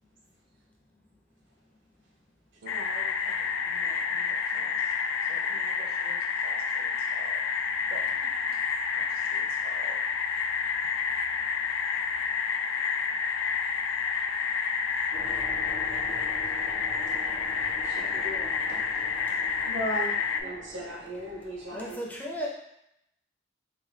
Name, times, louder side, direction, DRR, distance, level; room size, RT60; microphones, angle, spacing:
voice 1, 2.6-8.6 8.9-10.0, right 2 dB, 55° right, 1 dB, 0.5 m, -48 dB
sound 1, 2.7-20.4, left 6 dB, 85° left, 0.3 m, -29 dB
sound 2, 15.1-21.9, equal, 90° right, 1.2 m, -44 dB
voice 2, 17.8-18.8 19.6-20.1 20.4-22.0, equal, 70° right, -2 dB, 0.9 m, -36 dB
voice 3, 21.7-22.5, equal, 10° left, -3 dB, 0.4 m, -35 dB
3.7 x 2.2 x 3.2 m, 0.80 s
head